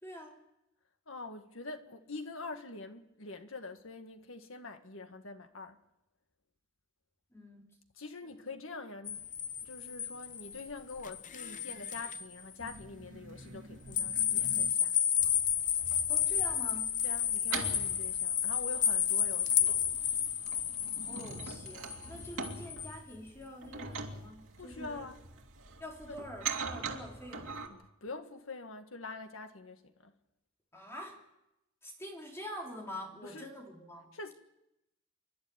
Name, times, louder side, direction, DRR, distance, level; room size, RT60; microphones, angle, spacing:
voice 1, 0.0-0.4 7.3-7.8 16.1-17.0 21.0-25.1 25.8-27.5 30.7-31.2 31.8-34.1, equal, 15° left, 3.3 m, -46 dB
voice 2, 1.1-5.8 8.0-9.3 9.6-15.0 17.0-19.8 24.6-25.2 26.1-26.2 27.7-30.1 33.2-33.5 34.1-34.3, left 3 dB, 80° left, 1.9 m, -45 dB
sound 1, 9.1-12.2 12.7-12.8 13.9-22.9, left 9 dB, 40° left, 0.8 m, -31 dB
sound 2, 12.6-14.7 15.2-27.7, right 4 dB, 90° right, 2.7 m, -44 dB
28.5 x 11.5 x 9.8 m
head